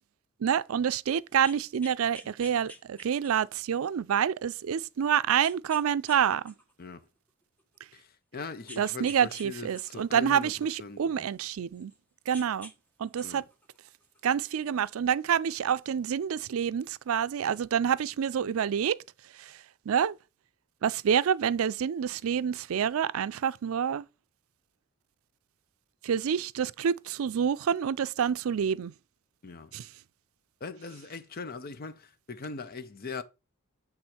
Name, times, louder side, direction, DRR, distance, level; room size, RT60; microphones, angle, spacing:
voice 1, 0.4-6.5 8.8-11.9 12.3-12.7 13.0-13.4 14.2-19.0 19.4-19.6 19.9-20.2 20.8-24.0 26.0-28.9 29.7-29.9, right 8 dB, 85° right, 0.4 m, -27 dB
sound 1, 1.3-3.6 4.2-4.3 5.4-6.2 6.5-7.8 8.7-9.5 9.7-12.0 12.3-12.7 13.0-14.5 15.5-15.6, equal, 10° left, 0.8 m, -49 dB
voice 2, 8.3-10.5 10.8-11.3 13.2-13.4 29.4-29.7 30.6-33.2, left 4 dB, 45° left, 0.6 m, -40 dB
8.0 x 3.7 x 4.3 m
head